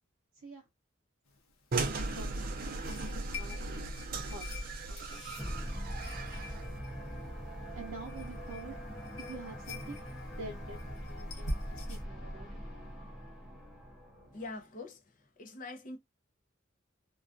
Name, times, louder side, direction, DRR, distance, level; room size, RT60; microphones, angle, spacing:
voice 1, 0.3-0.7 1.7-3.8 4.2-5.2 7.8-8.8 9.2-12.6, right 3 dB, 85° right, 0.6 m, -48 dB
sound 1, 1.3-12.0, left 2 dB, 85° left, 0.7 m, -47 dB
sound 2, 1.7-6.8, right 3 dB, 45° right, 0.4 m, -37 dB
sound 3, 4.5-14.6, equal, ahead, 0.7 m, -43 dB
voice 2, 14.3-16.0, left 2 dB, 40° left, 0.5 m, -44 dB
2.3 x 2.2 x 2.4 m
head